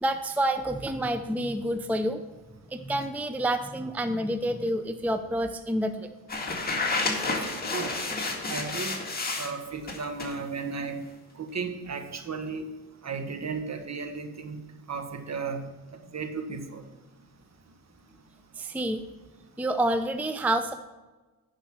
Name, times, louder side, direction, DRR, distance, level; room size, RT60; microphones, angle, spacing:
voice 1, 0.0-2.2 2.7-6.1 18.6-19.0 19.6-20.7, right 1 dB, 5° right, 9 dB, 0.5 m, -28 dB
sound 1, 6.3-9.5 9.9-10.4, left 3 dB, 25° left, 2.1 m, -30 dB
voice 2, 7.2-7.9 8.5-9.0 9.4-11.0 11.4-12.7 13.0-14.6 14.9-15.7 16.1-16.8, right 4 dB, 45° right, 6 dB, 1.4 m, -34 dB
10.5 x 5.2 x 6.3 m, 1.2 s
cardioid pair, 75°, 38 cm